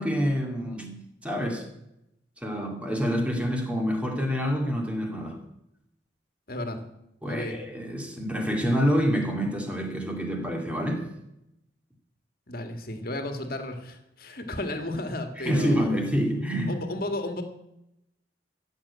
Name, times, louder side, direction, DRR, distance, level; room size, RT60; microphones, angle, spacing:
voice 1, 0.0-1.6 2.4-5.4 7.2-11.1 15.5-16.8, equal, 5° right, 2 dB, 2.4 m, -27 dB
voice 2, 6.5-6.8 7.2-7.6 12.5-15.9 16.7-17.4, left 1 dB, 55° left, 6 dB, 2.0 m, -33 dB
15.0 x 7.4 x 8.4 m, 0.83 s
head